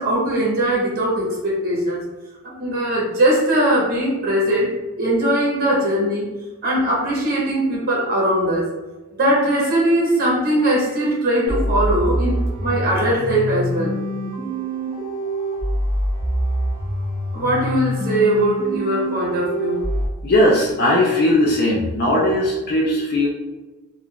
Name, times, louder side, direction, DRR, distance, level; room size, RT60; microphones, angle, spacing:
voice 1, 0.0-2.0 2.4-4.7 5.0-6.3 6.6-8.6 9.2-13.9 17.3-19.8, right 1 dB, 45° right, -5 dB, 1.0 m, -20 dB
sound 1, 11.5-20.1, equal, 10° right, 0.8 m, -25 dB
voice 2, 20.2-23.3, left 1 dB, 45° left, -4 dB, 0.4 m, -18 dB
3.5 x 2.4 x 2.2 m, 1.2 s
head